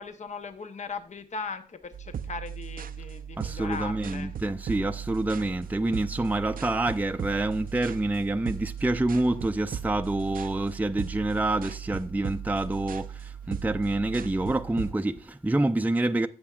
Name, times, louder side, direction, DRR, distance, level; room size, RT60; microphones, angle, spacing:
voice 1, 0.0-4.3 5.4-5.6, left 4 dB, 55° left, 0.8 m, -38 dB
sound 1, 1.9-14.9, right 8 dB, 75° right, 0.5 m, -37 dB
voice 2, 3.4-16.3, right 2 dB, 10° right, 0.5 m, -27 dB
16.0 x 6.6 x 2.4 m
cardioid pair, 70°, 15 cm